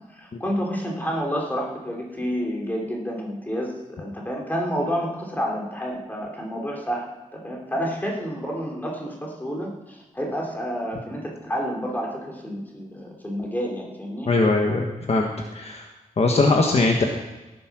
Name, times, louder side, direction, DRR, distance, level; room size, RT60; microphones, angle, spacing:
voice 1, 0.1-7.0 7.3-14.3, equal, 15° left, -1 dB, 3.3 m, -29 dB
voice 2, 14.3-15.8 16.2-17.0, left 3 dB, 50° left, 2 dB, 1.3 m, -21 dB
16.0 x 9.7 x 6.2 m, 1.1 s
wide cardioid pair, 165°, 14 cm